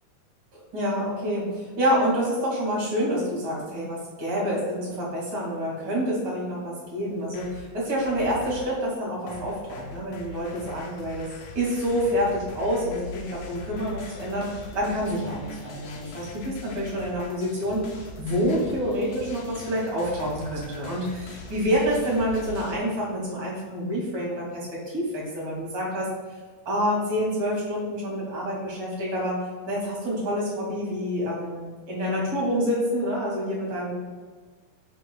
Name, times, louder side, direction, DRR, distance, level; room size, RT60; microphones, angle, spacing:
voice 1, 0.5-11.3 11.5-14.5 14.7-26.1 26.7-29.4 29.7-33.9, equal, 45° right, -4 dB, 2.9 m, -27 dB
sound 1, 7.1-8.8 9.3-22.7, left 3 dB, 85° left, 2.5 m, -41 dB
11.0 x 6.1 x 2.3 m, 1.4 s
omnidirectional pair, 3.6 m